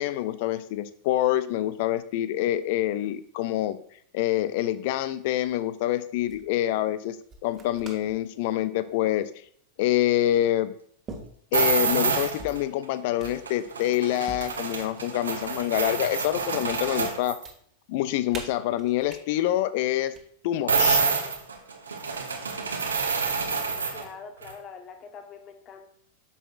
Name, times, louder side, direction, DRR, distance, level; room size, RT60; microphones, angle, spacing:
voice 1, 0.0-3.8 4.1-7.2 7.4-9.3 9.8-10.7 11.5-17.4 17.9-20.2 20.4-21.0, left 13 dB, 50° left, 15 dB, 0.5 m, -26 dB
sound 1, 5.5-5.8 6.2-6.5 7.3-8.2 8.6-8.9 9.9-10.0 11.1-11.8 12.1-12.7 13.2-13.8 14.3-15.6 16.0-16.8 17.0-17.5 18.3-19.2 20.0-20.2 21.3-21.8, right 3 dB, 25° right, 1.5 m, -44 dB
sound 2, 11.5-12.6 13.2-17.5 20.7-24.1 24.4-24.5, right 5 dB, 70° right, 1.1 m, -27 dB
voice 2, 23.9-25.9, left 5 dB, 30° left, 6 dB, 1.2 m, -44 dB
9.9 x 6.5 x 2.5 m, 0.64 s
figure-of-eight pair, 90°, 0 cm